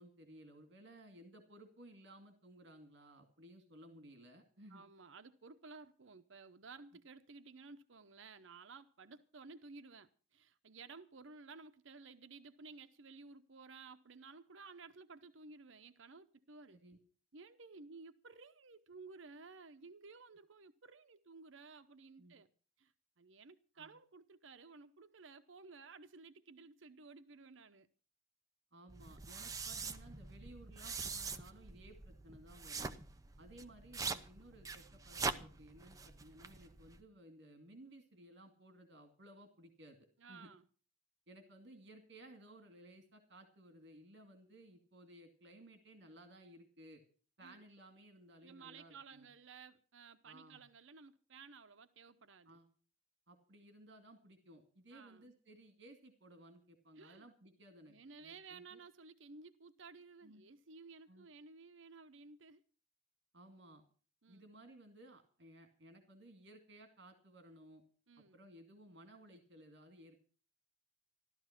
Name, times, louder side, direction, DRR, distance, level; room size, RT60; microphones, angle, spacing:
voice 1, 0.0-4.8 16.7-17.0 22.2-22.4 23.8-23.9 28.7-33.0 33.4-40.5 41.3-47.0 47.4-49.3 50.2-50.6 52.5-52.7 53.3-58.8 60.2-60.4 61.1-61.3 63.3-63.8 64.3-67.8 68.3-70.2, right 1 dB, 60° right, 2.3 m, -58 dB
voice 2, 4.7-16.8 17.3-22.5 22.8-27.9 40.2-40.7 47.4-47.7 48.4-52.6 54.9-55.2 57.0-57.3 57.9-62.6 64.2-64.5 68.1-68.4, right 4 dB, 80° right, 0.8 m, -55 dB
sound 1, 28.9-37.0, right 4 dB, 15° right, 0.7 m, -44 dB
14.5 x 12.5 x 5.9 m
head